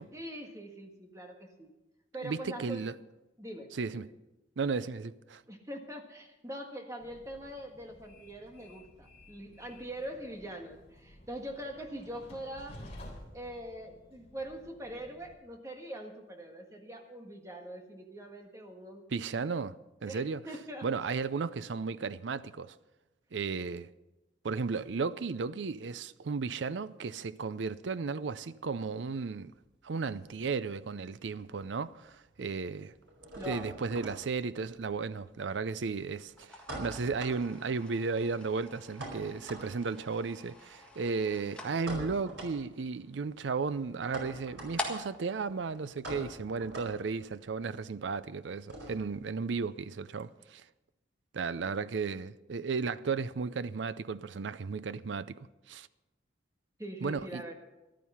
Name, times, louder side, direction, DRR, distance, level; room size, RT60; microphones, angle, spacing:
voice 1, 0.1-1.7 2.1-2.8 3.4-4.1 5.5-12.8 13.3-19.2 20.1-20.9 32.4-32.6 33.4-33.8 56.8-57.5, right 1 dB, 15° right, 1.6 m, -43 dB
voice 2, 2.2-2.9 3.7-4.1 4.6-5.4 19.1-19.8 20.0-20.4 20.8-22.8 23.3-23.9 24.4-29.5 29.8-32.9 33.5-50.6 51.3-55.9 57.0-57.4, right 4 dB, 75° right, 0.5 m, -34 dB
Train, 7.0-15.3, left 1 dB, 35° left, 3.5 m, -53 dB
sound 1, 29.5-31.0 31.3-49.3, right 1 dB, 90° right, 4.7 m, -46 dB
sound 2, 36.3-46.7, left 2 dB, 5° left, 1.7 m, -47 dB
14.0 x 12.0 x 5.6 m
head